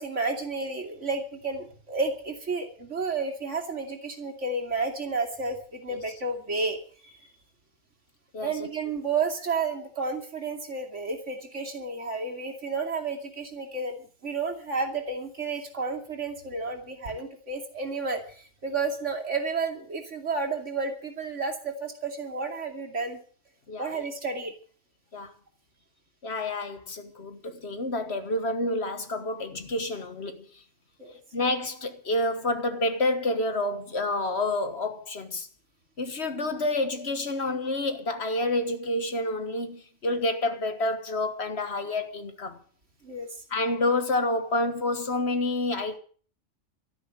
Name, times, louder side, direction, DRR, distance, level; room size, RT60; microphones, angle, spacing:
voice 1, 0.0-7.3 8.4-23.2 23.8-24.5 31.0-31.1 43.0-43.3, right 4 dB, 60° right, 2.9 m, -31 dB
voice 2, 26.2-30.5 31.3-35.5 36.0-42.6 43.5-46.0, left 2 dB, 55° left, 1.7 m, -28 dB
13.0 x 10.0 x 8.1 m
omnidirectional pair, 1.4 m